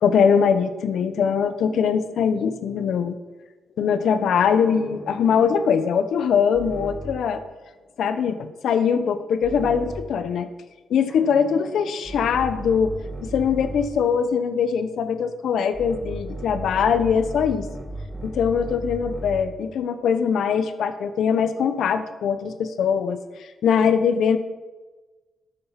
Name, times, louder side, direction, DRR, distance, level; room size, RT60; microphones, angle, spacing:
voice 1, 0.0-3.2 3.8-7.4 8.0-10.5 10.9-12.9 13.2-17.7 18.2-23.2 23.6-24.4, left 7 dB, 80° left, 11 dB, 1.1 m, -22 dB
sound 1, 4.6-7.4 9.4-10.2 11.1-14.1 15.7-19.6, right 2 dB, 15° right, 2.1 m, -36 dB
13.0 x 11.0 x 5.9 m, 1.2 s
cardioid pair, 95°, 0 cm